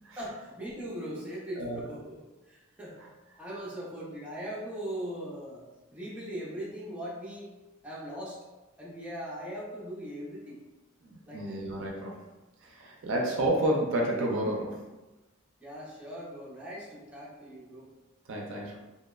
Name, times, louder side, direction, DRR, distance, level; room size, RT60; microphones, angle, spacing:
voice 1, 0.1-2.2 2.4-3.1 3.4-5.7 5.9-7.5 7.8-8.4 8.8-10.6 11.3-11.6 13.0-13.1 15.6-17.9, equal, 5° right, -7 dB, 0.5 m, -40 dB
voice 2, 11.0-12.2 12.6-14.8 18.3-18.8, right 1 dB, 65° right, -1 dB, 0.4 m, -30 dB
2.7 x 2.0 x 2.3 m, 1.1 s
head